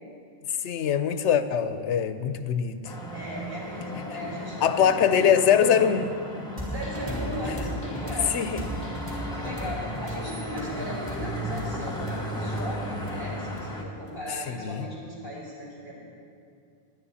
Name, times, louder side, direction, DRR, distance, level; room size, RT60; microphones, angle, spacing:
voice 1, 0.6-2.9 4.6-6.1 8.3-8.6 14.5-14.9, left 8 dB, 85° left, 11 dB, 1.0 m, -23 dB
sound 1, 2.8-13.8, equal, 5° left, 1.4 m, -35 dB
voice 2, 3.1-5.6 6.7-15.9, left 1 dB, 60° right, -6 dB, 4.5 m, -38 dB
sound 2, 6.6-14.1, equal, 30° right, 3.1 m, -36 dB
19.0 x 11.0 x 4.2 m, 2.4 s
omnidirectional pair, 1.1 m